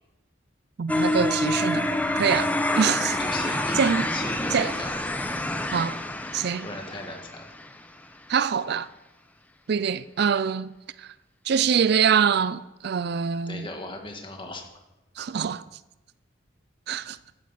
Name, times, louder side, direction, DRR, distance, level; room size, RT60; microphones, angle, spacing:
voice 1, 0.8-1.9 2.2-3.2 3.7-4.1 4.5-4.7 5.7-6.0 6.3-6.7 8.3-8.9 9.7-10.7 11.0-11.1 11.4-13.7 15.2-15.6 16.9-17.2, right 7 dB, 55° right, 0.4 m, -24 dB
sound 1, 0.9-7.8, left 1 dB, 10° left, 0.8 m, -27 dB
voice 2, 3.0-5.0 6.6-7.5 9.7-10.0 13.5-14.6, left 2 dB, 25° left, 1.9 m, -38 dB
13.5 x 9.4 x 6.5 m
head